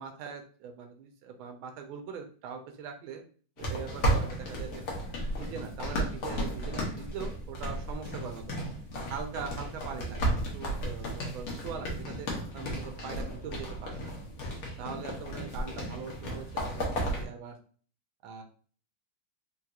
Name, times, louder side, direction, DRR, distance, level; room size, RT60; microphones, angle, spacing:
voice 1, 0.0-3.2 3.6-4.8 5.2-8.7 9.1-12.3 12.5-14.1 14.8-17.6 18.2-18.4, right 6 dB, 80° right, 5 dB, 1.4 m, -41 dB
sound 1, 3.6-17.3, right 1 dB, 55° left, 1.2 m, -34 dB
3.8 x 2.8 x 2.3 m, 0.42 s
omnidirectional pair, 2.2 m